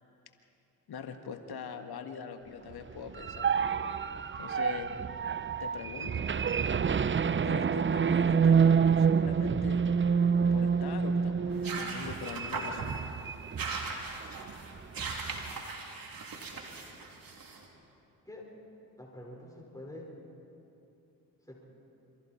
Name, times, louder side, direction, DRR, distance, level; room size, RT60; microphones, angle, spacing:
voice 1, 0.9-3.6 4.4-5.0 5.6-6.3 7.4-9.8 10.5-12.9, left 6 dB, 55° left, 6 dB, 1.7 m, -42 dB
sound 1, 2.9-13.9 14.2-14.4 14.8-15.5, right 6 dB, 25° right, 0.7 m, -28 dB
sound 2, 11.5-17.6, right 3 dB, 50° right, 3.2 m, -39 dB
voice 2, 19.0-20.1 21.4-21.6, left 1 dB, 10° left, -2 dB, 5.0 m, -46 dB
27.5 x 24.0 x 4.5 m, 2.8 s
hypercardioid pair, 40°, 45 cm